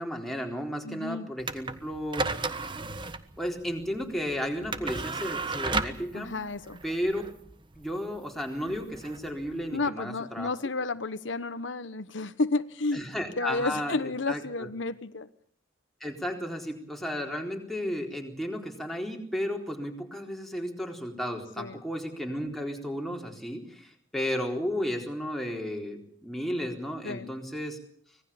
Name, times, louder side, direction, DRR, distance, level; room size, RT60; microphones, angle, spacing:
voice 1, 0.0-2.3 3.4-6.3 6.8-7.2 7.8-10.5 12.9-14.7 16.0-27.8, equal, ahead, 1 dB, 4.0 m, -33 dB
voice 2, 0.8-1.3 6.1-6.8 9.7-13.0 13.4-15.3 21.6-21.8 27.0-27.3, left 3 dB, 80° left, 12 dB, 1.1 m, -31 dB
sound 1, 1.4-9.9, right 3 dB, 25° right, 1.4 m, -35 dB
25.5 x 19.0 x 7.1 m, 0.64 s
head